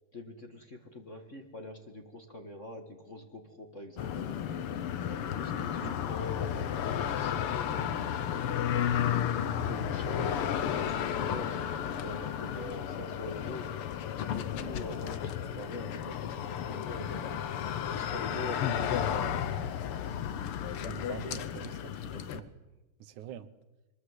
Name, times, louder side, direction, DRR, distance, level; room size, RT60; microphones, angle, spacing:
voice 1, 0.1-8.0 8.6-13.7 14.3-17.4 17.9-19.4, left 2 dB, 30° left, 5 dB, 1.5 m, -44 dB
sound 1, 4.0-22.4, left 9 dB, 60° left, 1.6 m, -33 dB
voice 2, 20.9-22.5 23.0-23.5, right 10 dB, 85° right, 13 dB, 2.5 m, -44 dB
23.5 x 20.5 x 8.1 m, 1.1 s
omnidirectional pair, 3.4 m